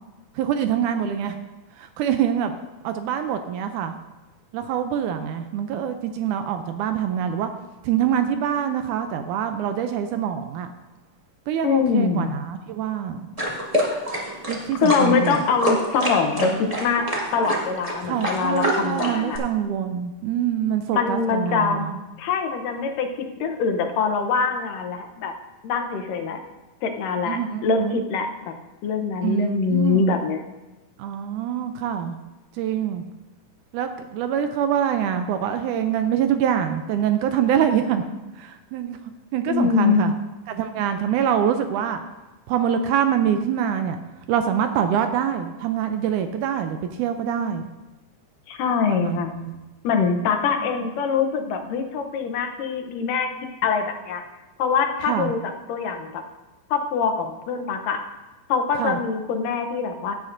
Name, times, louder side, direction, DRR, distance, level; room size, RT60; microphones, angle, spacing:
voice 1, 0.4-1.4 1.8-2.6 2.8-3.9 4.5-7.5 7.8-10.7 11.5-13.3 14.5-15.4 16.4-16.6 18.0-22.0 27.2-28.0 29.2-30.2 31.0-32.2 32.5-33.0 33.7-38.0 38.4-39.0 39.3-40.1 40.5-42.0 42.5-44.0 44.3-47.7 48.9-49.6 55.1-55.3 58.8-59.0, right 9 dB, 80° right, 8 dB, 1.9 m, -25 dB
voice 2, 11.6-12.3 14.8-17.1 17.3-19.4 20.9-21.9 22.2-23.1 23.4-25.3 25.6-26.4 26.8-28.5 28.8-30.4 39.5-40.2 48.5-49.3 49.8-53.3 53.6-54.2 54.6-56.2 56.7-58.0 58.5-60.2, left 5 dB, 80° left, 4 dB, 2.5 m, -23 dB
sound 1, 13.4-19.4, equal, 30° right, 0.6 m, -26 dB
16.0 x 9.3 x 2.6 m, 1.1 s
omnidirectional pair, 3.8 m